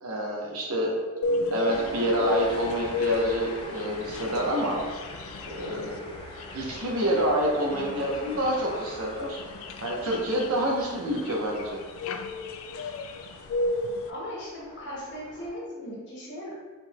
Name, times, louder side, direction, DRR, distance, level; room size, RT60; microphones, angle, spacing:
voice 1, 0.0-0.9 1.5-4.8 5.5-6.0 6.5-9.4 9.8-11.8, equal, 90° right, -2 dB, 1.0 m, -27 dB
sound 1, 1.2-14.1, left 3 dB, 70° left, 0.3 m, -33 dB
sound 2, 1.7-15.5, equal, 25° left, 0.6 m, -44 dB
voice 2, 14.1-16.5, left 1 dB, 55° left, -5 dB, 1.2 m, -38 dB
4.5 x 3.9 x 2.3 m, 1.4 s
head